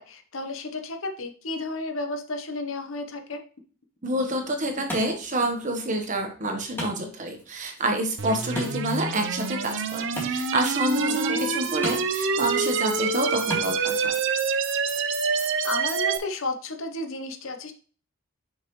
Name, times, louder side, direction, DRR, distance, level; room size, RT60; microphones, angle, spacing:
voice 1, 0.0-3.4 11.1-11.5 15.4-17.7, left 2 dB, 60° left, 6 dB, 0.9 m, -33 dB
voice 2, 4.0-14.1, right 1 dB, 35° right, 4 dB, 1.2 m, -28 dB
Wood, 4.1-14.1, left 1 dB, 10° left, 2.1 m, -40 dB
sound 1, 8.2-16.2, right 5 dB, 60° right, 0.7 m, -27 dB
6.6 x 5.6 x 3.1 m, 0.40 s
head